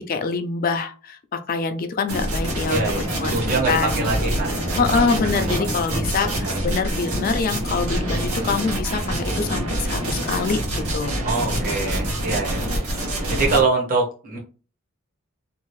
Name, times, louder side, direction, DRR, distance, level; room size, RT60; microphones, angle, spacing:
voice 1, 0.0-3.4 3.7-4.3 4.8-11.1, left 5 dB, 40° left, 7 dB, 0.3 m, -25 dB
sound 1, 2.1-13.6, right 1 dB, 90° right, 1.0 m, -26 dB
voice 2, 2.7-5.8 6.3-6.7 11.2-12.7 13.3-14.4, right 3 dB, 40° right, -2 dB, 0.8 m, -25 dB
2.6 x 2.3 x 3.1 m, 0.37 s
head